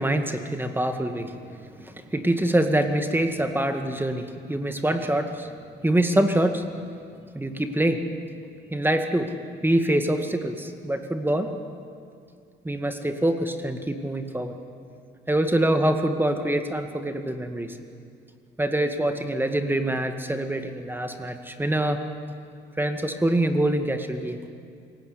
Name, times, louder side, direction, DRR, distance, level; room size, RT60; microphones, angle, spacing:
voice 1, 0.0-5.5 5.8-6.6 7.3-8.0 8.7-9.3 9.6-11.5 12.6-14.5 15.3-17.8 18.6-22.0 22.8-24.4, right 1 dB, 10° right, 6 dB, 2.1 m, -25 dB
26.5 x 17.5 x 9.8 m, 2.4 s
cardioid pair, 90°, 20 cm